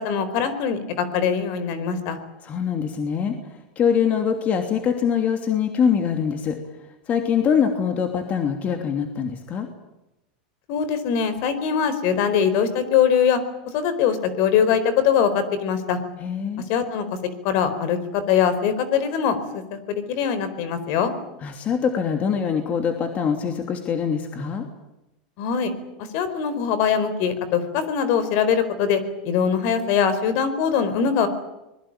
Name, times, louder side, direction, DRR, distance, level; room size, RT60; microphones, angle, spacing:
voice 1, 0.0-2.2 10.7-13.4 13.7-16.0 16.7-17.0 17.4-19.8 20.1-21.1 25.4-25.7 26.1-31.3, left 7 dB, 55° left, 12 dB, 4.5 m, -22 dB
voice 2, 2.4-6.6 7.1-9.7 16.2-16.6 21.4-24.7, left 7 dB, 30° left, 5 dB, 2.9 m, -23 dB
25.0 x 21.5 x 9.0 m, 0.95 s
supercardioid pair, 130°, 5 cm